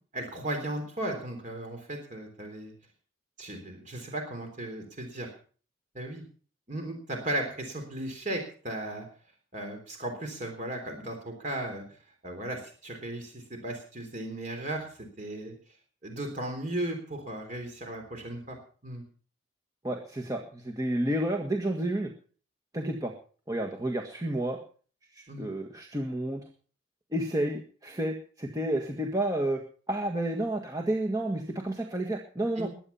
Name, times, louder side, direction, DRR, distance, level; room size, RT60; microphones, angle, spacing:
voice 1, 0.1-2.7 3.4-5.3 5.9-6.2 6.7-9.1 9.5-11.8 12.2-15.5 16.0-18.6 18.8-19.0 25.3-25.5 32.6-32.7, right 1 dB, 40° right, 4 dB, 3.6 m, -36 dB
voice 2, 19.8-22.1 22.7-23.1 23.5-24.6 25.1-26.4 27.1-29.6 29.9-32.7, right 1 dB, 15° right, 2 dB, 1.6 m, -30 dB
21.5 x 9.2 x 5.6 m, 0.42 s
head